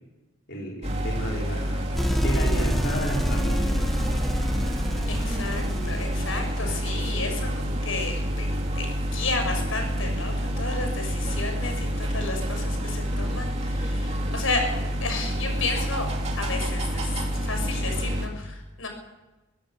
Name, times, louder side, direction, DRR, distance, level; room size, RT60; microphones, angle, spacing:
voice 1, 0.5-1.8 2.1-4.1 6.6-6.7, equal, 55° left, -3 dB, 5.0 m, -33 dB
sound 1, 0.8-18.3, equal, 30° right, 2.9 m, -28 dB
sound 2, 2.0-6.8, equal, ahead, 1.5 m, -27 dB
voice 2, 5.1-8.5 8.7-16.1 16.4-18.9, left 3 dB, 75° left, 5 dB, 6.4 m, -32 dB
24.0 x 16.5 x 7.1 m, 1.1 s
head